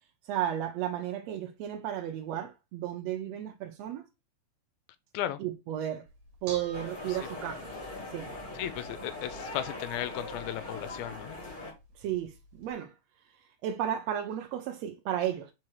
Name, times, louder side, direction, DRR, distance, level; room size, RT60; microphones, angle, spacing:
voice 1, 0.3-4.0 5.4-6.0 6.4-7.7 8.1-8.3 12.0-12.9 13.6-15.5, right 11 dB, 90° right, 1.5 m, -33 dB
Bell / Dishes pots and pans, 6.1-12.7, right 3 dB, 60° right, 1.5 m, -51 dB
sound 1, 6.7-11.7, left 2 dB, 25° left, 1.2 m, -41 dB
voice 2, 8.5-11.4, left 11 dB, 75° left, 1.9 m, -35 dB
4.7 x 4.3 x 4.7 m
omnidirectional pair, 3.9 m